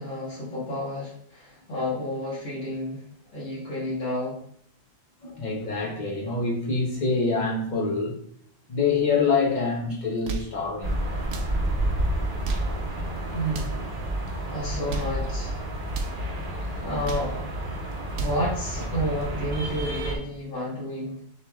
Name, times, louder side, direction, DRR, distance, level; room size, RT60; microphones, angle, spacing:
voice 1, 0.0-3.1 3.3-4.4 13.3-13.8 14.4-15.7 16.6-17.7 18.1-21.2, equal, 75° left, -8 dB, 2.0 m, -31 dB
voice 2, 5.2-8.1 8.7-11.0, left 4 dB, 40° left, -2 dB, 0.9 m, -25 dB
sound 1, 10.1-10.6 11.2-11.6 12.3-12.8 13.4-13.8 14.7-15.2 15.9-16.2 16.8-17.4 17.9-18.5, right 2 dB, 70° right, 1.0 m, -34 dB
sound 2, 10.8-20.2, right 1 dB, 45° right, 0.9 m, -30 dB
6.7 x 3.1 x 2.3 m, 0.63 s
omnidirectional pair, 1.3 m